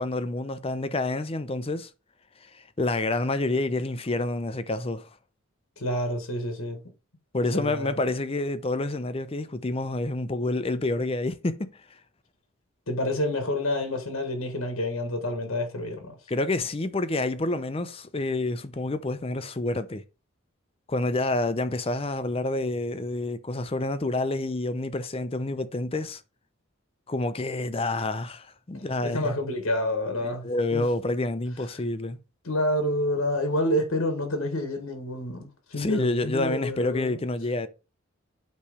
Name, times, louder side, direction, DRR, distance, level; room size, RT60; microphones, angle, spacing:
voice 1, 0.0-1.9 2.4-5.1 7.3-11.7 16.3-20.0 20.9-26.2 27.1-29.3 30.2-32.2 35.8-37.7, left 2 dB, 25° left, 0.6 m, -28 dB
voice 2, 5.8-6.8 7.5-8.1 12.9-16.2 29.0-30.8 32.4-37.2, left 1 dB, 90° left, 1.5 m, -28 dB
8.5 x 3.2 x 4.9 m
head